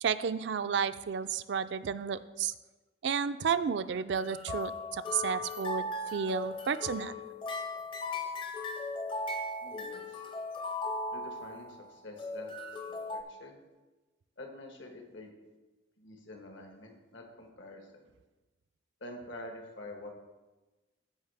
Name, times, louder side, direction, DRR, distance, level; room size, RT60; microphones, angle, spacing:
voice 1, 0.0-2.5 3.0-7.1, right 7 dB, 65° right, 13 dB, 0.4 m, -32 dB
sound 1, 4.1-11.8 12.2-13.2, left 2 dB, 25° left, 0.6 m, -37 dB
voice 2, 9.6-10.2 11.1-13.6 14.4-15.3 16.0-18.0 19.0-20.1, left 1 dB, 75° left, 3 dB, 1.3 m, -47 dB
14.5 x 5.3 x 3.4 m, 1.1 s
head